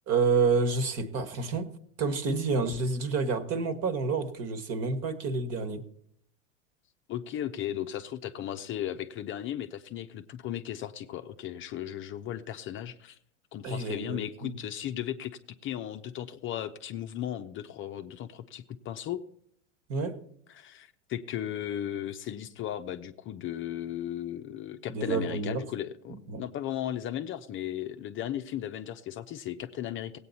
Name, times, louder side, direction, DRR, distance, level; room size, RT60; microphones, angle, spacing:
voice 1, 0.1-1.7 2.0-5.8 13.6-14.5 19.9-20.2 24.9-25.6 26.1-26.4, right 4 dB, 40° right, 1.5 m, -29 dB
voice 2, 7.1-13.2 13.5-19.2 20.5-30.2, left 11 dB, 35° left, 0.6 m, -36 dB
17.0 x 8.6 x 4.1 m
hypercardioid pair, 105°, 37 cm